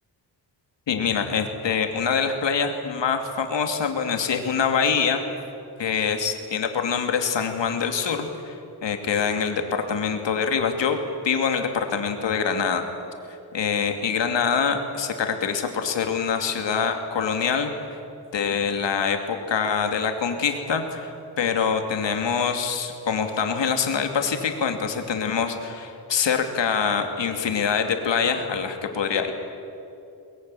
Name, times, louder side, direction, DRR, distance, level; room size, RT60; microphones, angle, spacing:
voice 1, 0.9-5.2 5.8-12.8 13.5-18.0 18.3-29.3, left 6 dB, 85° left, 5 dB, 2.8 m, -25 dB
22.0 x 22.0 x 10.0 m, 2.7 s
wide cardioid pair, 130°, 43 cm